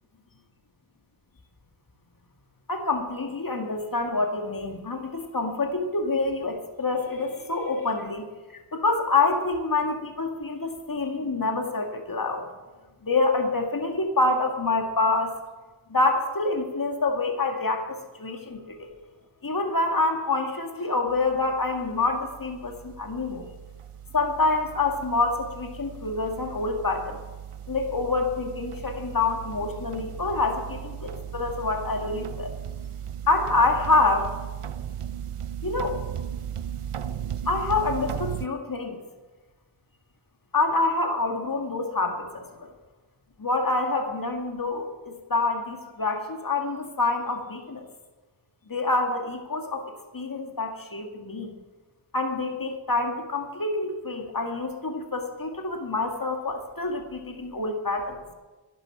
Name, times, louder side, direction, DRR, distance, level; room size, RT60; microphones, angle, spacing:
voice 1, 2.7-8.3 8.5-12.5 13.0-15.4 15.9-18.9 19.4-23.5 24.1-27.2 27.7-32.6 33.3-34.3 35.6-36.0 37.5-39.0 40.5-42.7 43.4-47.9 48.7-51.5 52.1-58.2, left 3 dB, 40° left, 4 dB, 2.1 m, -27 dB
sound 1, 21.1-38.5, right 9 dB, 85° right, 0.8 m, -37 dB
11.5 x 11.0 x 7.4 m, 1.2 s
wide cardioid pair, 50°, 50 cm